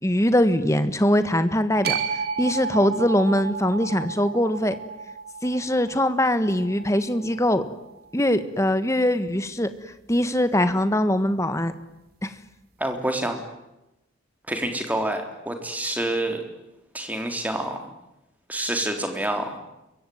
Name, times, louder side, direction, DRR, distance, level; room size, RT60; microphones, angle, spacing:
voice 1, 0.0-2.0 2.4-4.7 5.4-7.6 8.1-9.7 10.1-11.7 12.2-12.3, left 1 dB, 15° left, 11 dB, 1.5 m, -22 dB
sound 1, 1.8-8.1, right 6 dB, 50° right, 3.4 m, -33 dB
voice 2, 12.8-13.4 14.5-16.4 16.9-17.8 18.5-19.5, right 1 dB, 10° right, 5 dB, 3.5 m, -27 dB
27.0 x 23.5 x 9.4 m, 0.93 s
head